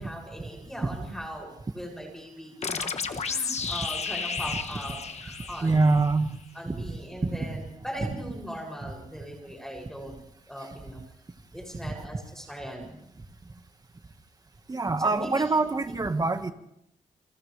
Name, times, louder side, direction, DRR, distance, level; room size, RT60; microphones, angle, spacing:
voice 1, 0.0-5.8 6.5-10.2 10.5-11.0 11.5-13.0 15.0-15.5, equal, 5° left, 0 dB, 7.5 m, -40 dB
sound 1, 2.6-6.1, left 5 dB, 55° left, 1.4 m, -32 dB
voice 2, 5.6-6.3 6.7-6.8 7.2-7.5 14.7-16.5, right 3 dB, 30° right, 7 dB, 1.8 m, -24 dB
29.0 x 27.0 x 3.5 m, 0.79 s
wide cardioid pair, 110°, 14 cm